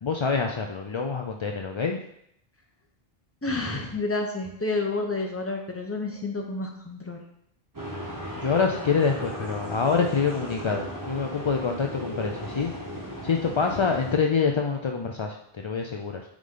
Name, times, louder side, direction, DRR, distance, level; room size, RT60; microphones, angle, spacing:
voice 1, 0.0-2.0 8.4-12.7 13.2-16.2, left 5 dB, 50° left, 2 dB, 0.3 m, -26 dB
voice 2, 3.4-7.2, left 3 dB, 15° left, 2 dB, 0.8 m, -30 dB
sound 1, 7.7-14.2, equal, 20° right, 1.2 m, -36 dB
8.4 x 3.8 x 3.8 m, 0.75 s
omnidirectional pair, 1.0 m